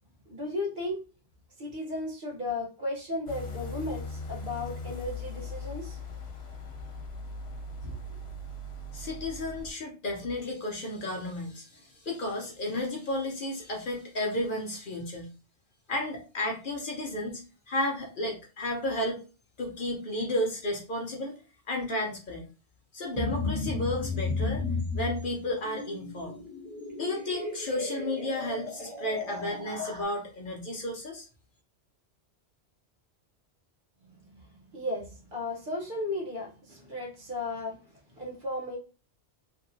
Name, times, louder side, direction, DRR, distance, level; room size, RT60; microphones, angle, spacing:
voice 1, 0.3-1.0 1.6-6.0 7.8-8.0 34.4-34.5 34.7-37.8 38.1-38.8, left 2 dB, 45° right, 1.1 m, -35 dB
sound 1, 3.3-9.7, left 2 dB, 90° left, 1.1 m, -39 dB
voice 2, 8.9-15.3 15.9-19.2 19.6-21.3 21.7-22.5 22.9-24.7 24.9-26.4 27.0-31.3, left 1 dB, 50° left, 0.8 m, -33 dB
sound 2, 23.1-30.0, left 3 dB, 10° right, 1.1 m, -34 dB
2.8 x 2.7 x 2.7 m
omnidirectional pair, 1.2 m